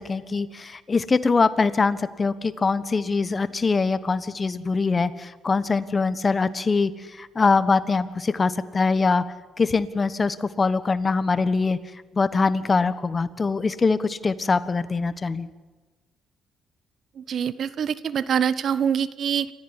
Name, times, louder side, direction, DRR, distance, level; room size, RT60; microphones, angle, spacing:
voice 1, 0.0-6.9 7.2-9.2 9.6-11.8 12.1-15.5, left 4 dB, 30° left, 14 dB, 1.3 m, -23 dB
voice 2, 17.2-19.5, right 8 dB, 60° right, 16 dB, 1.1 m, -25 dB
27.5 x 14.5 x 9.9 m, 1.3 s
cardioid pair, 90°, 0 cm